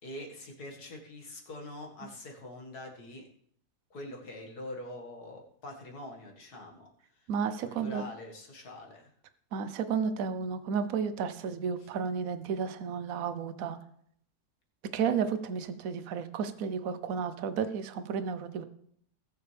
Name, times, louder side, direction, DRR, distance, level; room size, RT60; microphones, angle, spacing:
voice 1, 0.0-3.3 3.9-7.3 7.6-9.1, left 1 dB, 70° left, 1 dB, 2.4 m, -44 dB
voice 2, 7.3-8.0 9.5-13.8 14.9-18.6, right 6 dB, 65° right, 11 dB, 1.2 m, -32 dB
19.0 x 7.1 x 3.4 m, 0.68 s
omnidirectional pair, 1.7 m